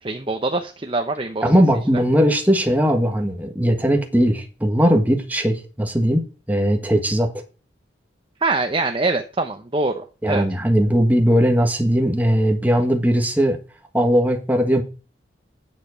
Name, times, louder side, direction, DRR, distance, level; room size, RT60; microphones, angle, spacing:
voice 1, 0.0-1.4 1.9-2.0 8.4-10.4, right 3 dB, 25° right, 6 dB, 0.8 m, -24 dB
voice 2, 1.4-6.2 6.5-7.3 10.2-13.6 13.9-14.8, equal, 10° right, 2 dB, 1.7 m, -18 dB
9.6 x 7.5 x 5.3 m, 0.34 s
head